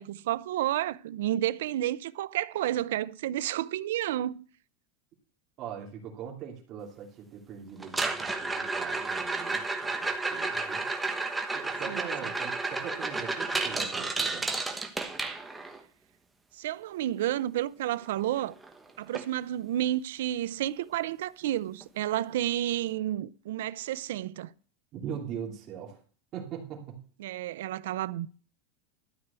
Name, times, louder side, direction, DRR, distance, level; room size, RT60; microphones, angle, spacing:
voice 1, 0.0-4.4 11.9-12.0 16.6-18.5 19.0-24.5 27.2-28.3, right 13 dB, 85° right, 0.5 m, -31 dB
voice 2, 5.6-10.9 11.5-14.5 24.9-26.0 26.3-27.0, right 8 dB, 30° right, 2.9 m, -41 dB
sound 1, 7.8-15.8 18.1-18.2 18.4-18.7 19.1-19.2 19.8-19.9 21.8-21.9, right 3 dB, 5° right, 1.1 m, -32 dB
13.0 x 4.8 x 8.2 m
supercardioid pair, 170°, 0 cm